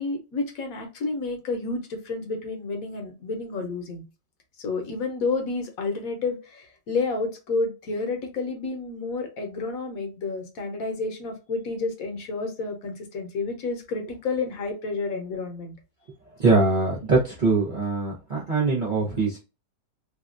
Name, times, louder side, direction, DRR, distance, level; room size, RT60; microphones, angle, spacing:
voice 1, 0.0-4.0 4.6-15.7, left 3 dB, 60° left, 3 dB, 1.1 m, -30 dB
voice 2, 16.4-19.4, right 3 dB, 80° right, -5 dB, 0.4 m, -22 dB
3.3 x 2.3 x 2.4 m, 0.29 s
omnidirectional pair, 2.0 m